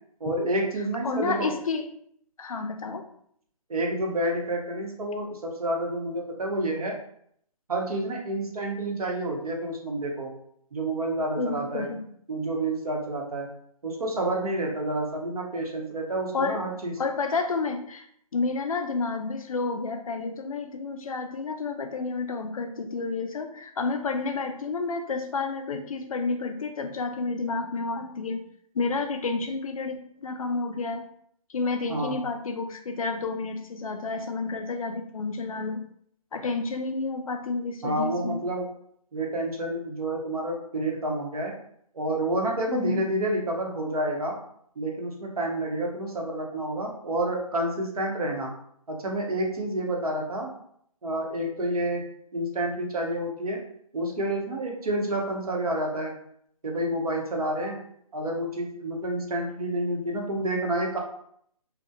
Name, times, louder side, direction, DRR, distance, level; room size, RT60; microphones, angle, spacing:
voice 1, 0.2-1.5 3.7-6.9 7.7-10.3 10.7-11.9 12.3-13.5 13.8-16.9 31.9-32.1 37.8-38.6 39.1-41.5 41.9-44.4 44.8-48.5 48.9-50.5 51.0-52.0 52.3-53.6 53.9-56.1 56.6-57.8 58.1-61.0, right 1 dB, 70° right, 0 dB, 0.8 m, -29 dB
voice 2, 1.0-1.9 2.4-3.0 11.4-12.0 16.3-16.6 17.0-18.1 18.3-28.5 28.7-31.0 31.5-35.8 36.3-38.4 42.7-43.0, left 4 dB, 65° left, 6 dB, 0.4 m, -30 dB
2.8 x 2.1 x 2.2 m, 0.67 s
hypercardioid pair, 165°, 19 cm